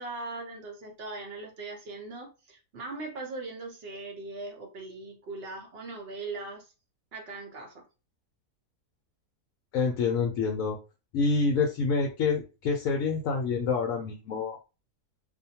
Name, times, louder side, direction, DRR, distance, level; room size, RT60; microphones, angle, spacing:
voice 1, 0.0-6.7 7.1-7.8, right 3 dB, 50° right, 0.8 m, -40 dB
voice 2, 9.7-10.8 11.1-14.6, left 4 dB, 70° left, 0.9 m, -27 dB
2.7 x 2.1 x 2.7 m
omnidirectional pair, 1.6 m